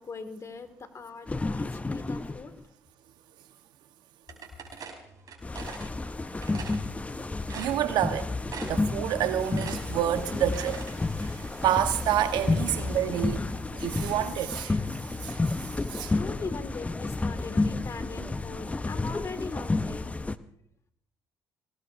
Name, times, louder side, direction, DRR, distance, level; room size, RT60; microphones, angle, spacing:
voice 1, 0.0-2.5 16.0-20.1, left 4 dB, 40° left, 2.1 m, -40 dB
sound 1, 1.3-2.6 5.4-20.4, left 3 dB, 20° left, 0.8 m, -31 dB
sound 2, 4.3-5.9 6.4-6.8 7.2-7.3 7.5-8.1 8.5-8.9 9.2-10.9, right 6 dB, 55° right, 5.0 m, -41 dB
sound 3, 4.6-16.5, right 2 dB, 40° right, 6.2 m, -54 dB
voice 2, 7.5-8.3 8.6-10.9 11.2-13.4 13.7-16.2, right 11 dB, 75° right, 1.2 m, -29 dB
24.5 x 19.0 x 2.7 m
supercardioid pair, 65°, 7 cm